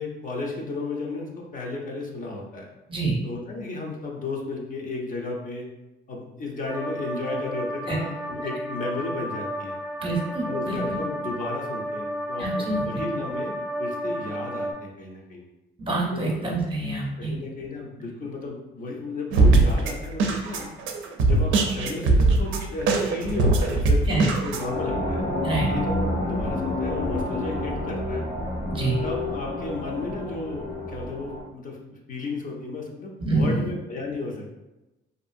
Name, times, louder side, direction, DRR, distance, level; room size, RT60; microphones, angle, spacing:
voice 1, 0.0-2.7 3.2-5.7 6.1-9.8 10.5-15.4 16.1-16.3 17.2-20.7 21.2-25.2 25.7-28.2 29.0-34.5, left 3 dB, 40° left, -1 dB, 0.6 m, -34 dB
sound 1, 6.7-14.7, equal, 10° right, 0.3 m, -32 dB
voice 2, 10.0-11.0 12.4-12.8 15.8-17.3 24.1-24.3 25.4-25.7 28.7-29.0 33.2-33.6, right 2 dB, 25° right, -2 dB, 0.7 m, -26 dB
sound 2, 19.3-24.6, right 3 dB, 75° right, 0.4 m, -21 dB
sound 3, 24.6-31.4, left 1 dB, 75° left, 1.0 m, -29 dB
2.7 x 2.4 x 2.5 m, 1.0 s
cardioid pair, 90°, 20 cm